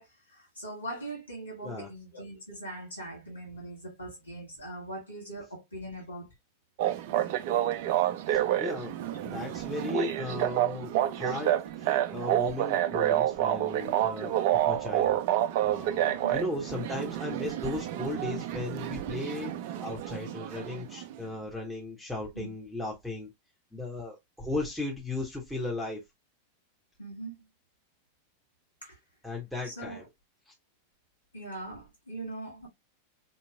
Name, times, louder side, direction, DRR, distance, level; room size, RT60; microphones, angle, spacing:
voice 1, 0.0-6.3 16.0-16.4 22.3-22.5 27.0-27.4 28.8-29.0 29.6-30.0 31.3-32.7, right 1 dB, 80° left, 1.7 m, -41 dB
sound 1, 6.8-21.1, right 12 dB, 50° right, 0.4 m, -29 dB
voice 2, 8.3-14.4 14.7-15.2 15.6-23.3 23.7-26.0 29.2-30.0 30.5-30.6, left 2 dB, ahead, 1.0 m, -36 dB
4.6 x 2.8 x 2.3 m
figure-of-eight pair, 90°, 0 cm